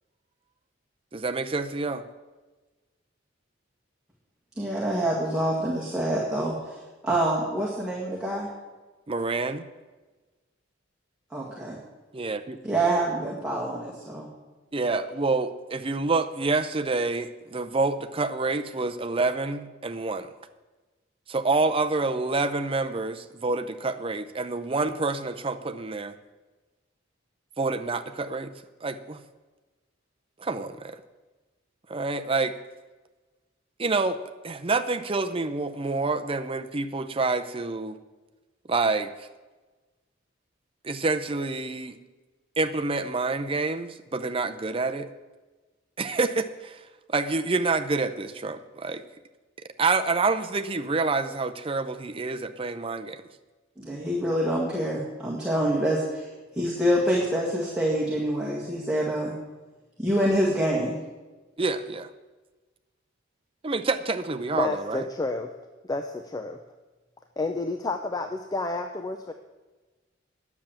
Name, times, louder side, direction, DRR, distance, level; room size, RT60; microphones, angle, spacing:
voice 1, 1.1-2.0 9.1-9.7 12.1-12.6 14.7-20.3 21.3-26.2 27.6-28.5 28.8-29.2 30.4-31.0 31.9-32.5 33.8-34.2 34.4-38.0 38.7-39.3 40.8-42.0 42.6-45.1 46.0-46.8 47.1-49.0 49.8-53.2 61.6-62.1 63.6-65.1, right 3 dB, 30° right, 9 dB, 0.6 m, -27 dB
voice 2, 4.6-8.5 11.3-11.8 12.6-14.3 53.8-56.2 56.6-59.3 60.0-60.9, right 1 dB, 5° right, -6 dB, 1.9 m, -26 dB
voice 3, 64.6-65.5 65.9-66.6 67.4-69.3, left 3 dB, 20° left, 5 dB, 0.5 m, -30 dB
10.0 x 7.2 x 8.8 m, 1.2 s
head